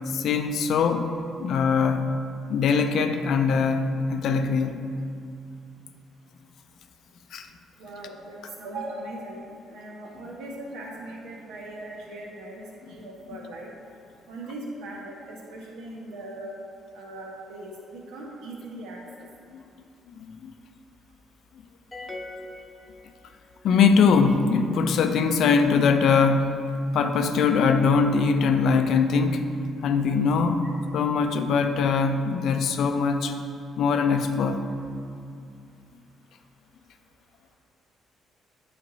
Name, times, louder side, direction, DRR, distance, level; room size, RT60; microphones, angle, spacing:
voice 1, 0.1-1.1 1.4-2.1 2.5-4.8 7.3-7.5 19.5-19.6 20.2-20.5 23.6-26.6 26.9-29.4 29.8-30.6 30.9-33.3 33.8-34.6, left 5 dB, 65° left, 7 dB, 0.4 m, -22 dB
voice 2, 7.8-13.7 14.3-16.5 16.9-19.0 30.6-30.7, right 1 dB, 80° right, -2 dB, 1.1 m, -39 dB
sound 1, 21.9-23.6, left 2 dB, 15° left, 0.8 m, -40 dB
8.5 x 3.6 x 4.0 m, 2.4 s
supercardioid pair, 60°, 0 cm